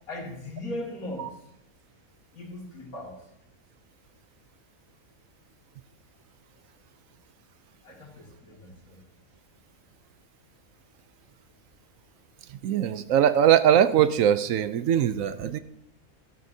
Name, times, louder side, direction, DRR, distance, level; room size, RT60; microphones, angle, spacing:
voice 1, 0.1-1.3 2.3-3.1 7.8-8.7, left 1 dB, 75° left, 0 dB, 2.8 m, -38 dB
voice 2, 12.6-15.6, right 10 dB, 70° right, 13 dB, 0.9 m, -21 dB
16.0 x 13.0 x 2.7 m, 0.80 s
omnidirectional pair, 1.5 m